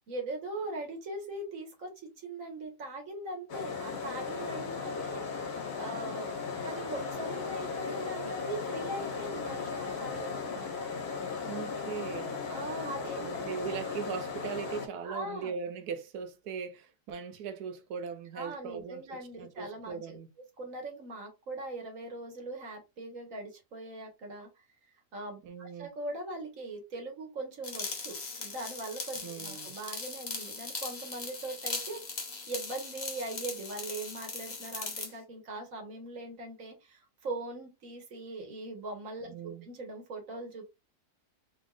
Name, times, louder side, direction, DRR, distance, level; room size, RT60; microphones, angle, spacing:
voice 1, 0.1-5.3 5.5-6.3 6.6-10.6 12.5-13.5 15.0-15.5 18.3-20.2 20.6-24.6 25.1-40.6, right 2 dB, 55° right, 1.6 m, -41 dB
sound 1, 3.5-14.9, left 5 dB, 70° left, 1.4 m, -36 dB
voice 2, 11.5-12.4 13.2-20.3 25.4-25.9 29.2-29.7 39.3-39.7, right 6 dB, 70° right, 1.2 m, -39 dB
sound 2, 27.6-35.1, left 4 dB, 45° left, 0.5 m, -39 dB
3.9 x 3.5 x 2.4 m
omnidirectional pair, 1.8 m